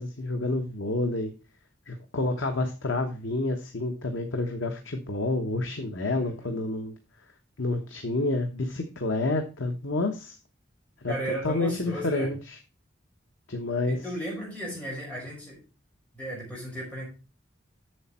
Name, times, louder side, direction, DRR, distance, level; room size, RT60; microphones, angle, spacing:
voice 1, 0.0-1.3 1.9-6.9 7.6-10.4 11.0-11.1 11.4-12.6 13.5-14.0, left 2 dB, 90° left, 5 dB, 1.1 m, -29 dB
voice 2, 6.1-6.5 11.1-12.3 13.9-15.6 16.1-17.1, right 1 dB, 5° left, -5 dB, 5.1 m, -35 dB
8.0 x 7.0 x 4.3 m, 0.31 s
head